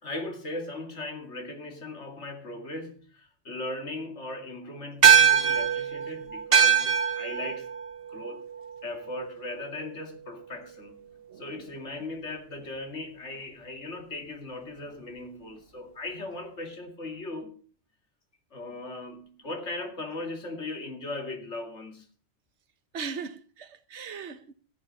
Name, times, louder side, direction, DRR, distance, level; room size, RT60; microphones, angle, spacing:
voice 1, 0.0-7.7 8.1-8.5 8.8-11.0 11.4-17.6 18.5-22.1, left 2 dB, 80° left, 2.6 m, -38 dB
sound 1, 5.0-9.7, right 8 dB, 55° right, 1.3 m, -23 dB
voice 2, 11.3-11.6 22.9-24.5, right 5 dB, 75° right, 1.3 m, -39 dB
13.5 x 9.2 x 5.5 m
omnidirectional pair, 1.2 m